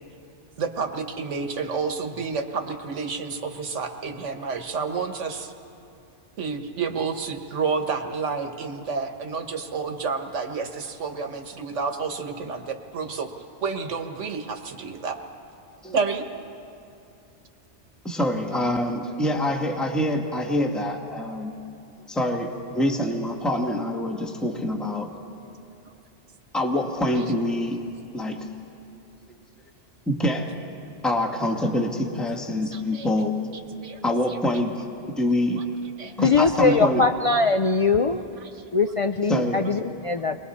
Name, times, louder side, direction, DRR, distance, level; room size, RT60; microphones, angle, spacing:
voice 1, 0.6-5.5 6.4-13.3 13.6-15.2 15.9-16.3 32.7-33.1 33.8-34.0 36.0-36.1 36.7-36.8 38.4-38.6, right 5 dB, 85° right, 5 dB, 1.5 m, -30 dB
voice 2, 18.0-21.6 22.1-25.1 26.5-27.8 28.1-28.5 30.1-30.5 31.0-33.3 34.0-34.8 35.2-35.6 36.2-37.0 39.3-39.6, left 1 dB, ahead, 2 dB, 1.3 m, -25 dB
voice 3, 36.2-38.2 38.7-40.4, left 4 dB, 50° left, 5 dB, 0.4 m, -21 dB
29.5 x 22.0 x 4.2 m, 2.7 s
omnidirectional pair, 1.2 m